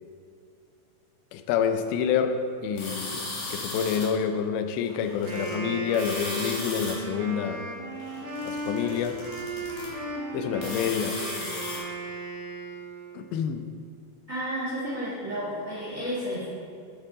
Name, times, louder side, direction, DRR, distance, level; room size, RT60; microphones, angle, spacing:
voice 1, 1.3-7.6 8.5-9.2 10.3-11.2 13.1-13.6, left 7 dB, 80° left, 8 dB, 2.3 m, -28 dB
sound 1, 2.8-4.1 4.8-5.6 5.9-6.9 7.9-9.9 10.5-11.8, left 2 dB, 60° left, 2.4 m, -36 dB
Wind instrument woodwind instrument, 5.2-13.2, right 1 dB, 65° right, 2.5 m, -36 dB
voice 2, 14.3-16.4, equal, 80° right, -9 dB, 0.7 m, -31 dB
9.6 x 5.7 x 3.8 m, 2.4 s
omnidirectional pair, 4.5 m